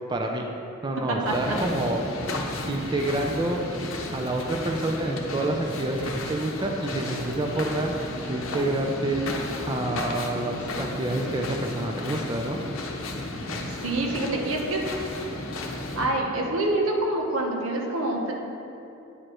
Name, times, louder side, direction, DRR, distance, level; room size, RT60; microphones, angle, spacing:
voice 1, 0.1-0.5 0.8-2.0 2.7-3.6 4.1-7.9 8.3-9.2 9.7-12.6, right 2 dB, 20° right, 2 dB, 0.4 m, -28 dB
sound 1, 1.3-16.1, left 2 dB, 70° left, 0.7 m, -33 dB
voice 2, 13.3-15.1 16.0-18.3, right 1 dB, 90° right, 0 dB, 0.9 m, -27 dB
9.6 x 4.9 x 3.0 m, 2.8 s
head